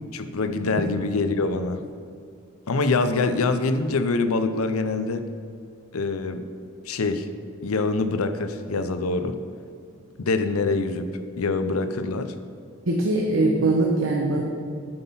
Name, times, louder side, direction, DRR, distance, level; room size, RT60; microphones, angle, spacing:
voice 1, 0.1-1.8 2.7-5.2 5.9-6.4 6.9-7.3 7.6-9.3 10.2-11.1 11.4-12.3, left 3 dB, 90° left, 9 dB, 0.6 m, -24 dB
voice 2, 12.9-14.4, right 2 dB, 65° right, -1 dB, 0.9 m, -21 dB
9.7 x 5.7 x 5.6 m, 2.3 s
head